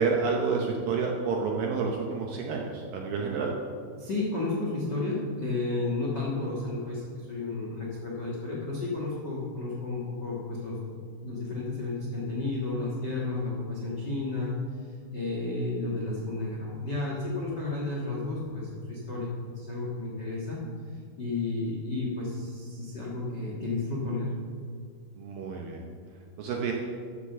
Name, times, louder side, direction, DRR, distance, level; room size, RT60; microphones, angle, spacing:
voice 1, 0.0-3.5 25.2-25.8 26.4-26.7, right 5 dB, 75° right, 0 dB, 2.2 m, -29 dB
voice 2, 4.0-11.0 11.2-20.6 20.9-24.3, left 2 dB, 60° left, -4 dB, 1.1 m, -32 dB
14.0 x 6.8 x 6.8 m, 2.2 s
omnidirectional pair, 5.1 m